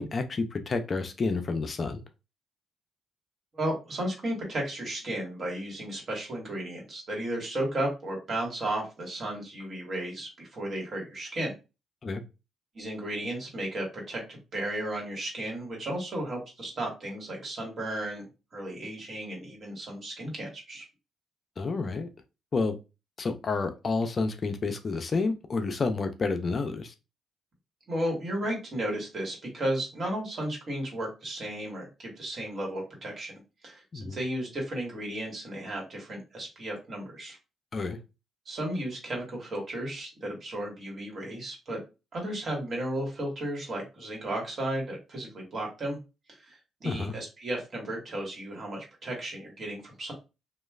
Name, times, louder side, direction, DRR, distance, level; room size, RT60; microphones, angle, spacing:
voice 1, 0.0-2.0 12.0-12.2 21.6-22.1 22.5-22.8 23.2-26.9 33.9-34.2 37.7-38.0 46.8-47.1, left 3 dB, 40° left, 7 dB, 0.4 m, -29 dB
voice 2, 3.5-11.5 12.7-20.8 27.9-33.8 34.1-37.4 38.4-41.8 42.1-46.0 46.4-50.1, right 1 dB, 45° right, -1 dB, 1.5 m, -34 dB
3.0 x 2.3 x 2.3 m, 0.28 s
cardioid pair, 90°, 0 cm